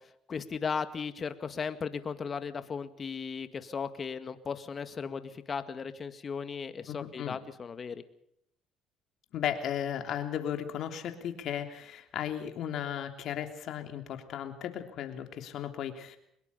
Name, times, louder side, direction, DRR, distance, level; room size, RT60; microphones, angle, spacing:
voice 1, 0.3-8.0, left 6 dB, 40° left, 10 dB, 1.9 m, -36 dB
voice 2, 6.9-7.4 9.3-16.2, left 10 dB, 65° left, 6 dB, 3.2 m, -35 dB
24.0 x 21.5 x 5.6 m, 0.72 s
supercardioid pair, 90°, 0 cm